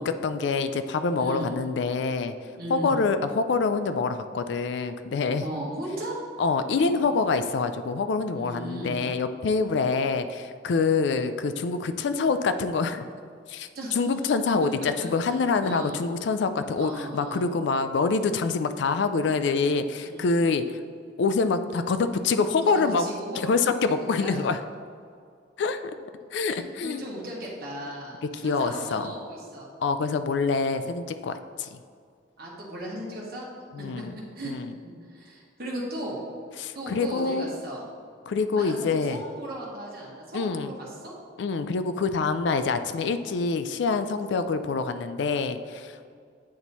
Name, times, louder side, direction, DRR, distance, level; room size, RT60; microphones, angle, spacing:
voice 1, 0.0-2.3 2.7-5.5 6.4-13.1 13.5-20.8 21.2-23.1 23.3-24.6 25.6-25.9 26.3-27.0 28.3-29.1 29.8-31.8 33.7-34.1 34.4-34.7 36.6-37.5 38.3-39.2 40.3-40.7 41.4-46.1, left 4 dB, 65° left, 10 dB, 0.3 m, -26 dB
voice 2, 1.2-1.5 2.5-3.0 5.4-6.2 6.8-7.1 8.3-9.0 13.7-14.0 15.0-16.0 16.7-17.4 20.1-20.2 22.6-24.4 26.4-29.7 32.4-33.4 33.8-34.0 34.3-34.5 34.8-36.2 36.7-37.8 38.6-41.1, right 1 dB, 50° right, -5 dB, 1.4 m, -37 dB
8.5 x 3.0 x 4.1 m, 2.2 s
head